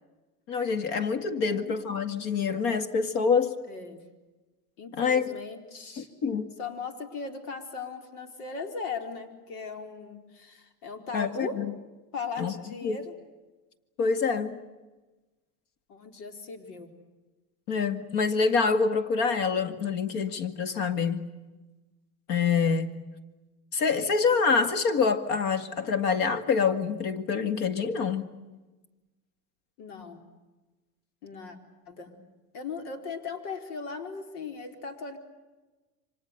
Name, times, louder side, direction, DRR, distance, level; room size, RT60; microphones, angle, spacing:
voice 1, 0.5-3.6 4.9-5.2 6.0-6.5 11.1-11.7 12.4-12.5 12.8-13.0 14.0-14.6 17.7-21.3 22.3-23.0 23.7-28.3, left 5 dB, 45° left, 2.1 m, -26 dB
voice 2, 1.4-1.8 3.7-4.0 4.8-6.1 6.6-11.6 12.1-13.1 15.9-16.9 29.8-30.2 31.2-31.6 31.9-32.1 32.5-35.2, left 4 dB, 80° left, 4.5 m, -38 dB
28.5 x 25.5 x 6.8 m
supercardioid pair, 160°, 45 cm